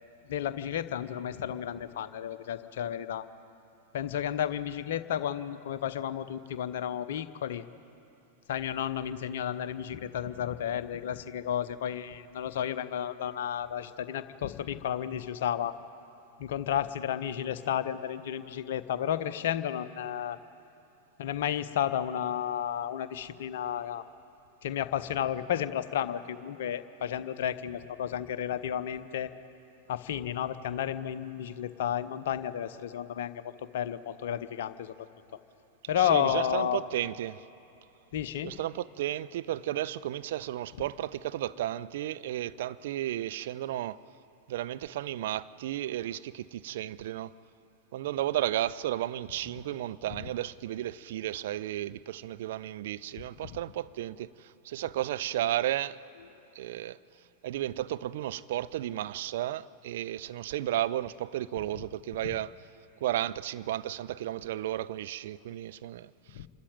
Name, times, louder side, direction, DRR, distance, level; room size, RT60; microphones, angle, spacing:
voice 1, 0.3-3.3 3.9-7.6 8.5-15.8 16.4-20.4 21.2-24.0 24.6-29.3 29.9-34.9 35.9-36.8 38.1-38.5 53.5-53.6 66.3-66.5, left 10 dB, 55° left, 0.8 m, -32 dB
voice 2, 35.9-37.4 38.4-44.0 44.5-47.3 47.9-54.3 54.6-56.0 56.6-57.0 57.4-62.5 63.0-66.1, right 13 dB, 55° right, 0.5 m, -33 dB
26.5 x 13.0 x 9.1 m
figure-of-eight pair, 90°, 0 cm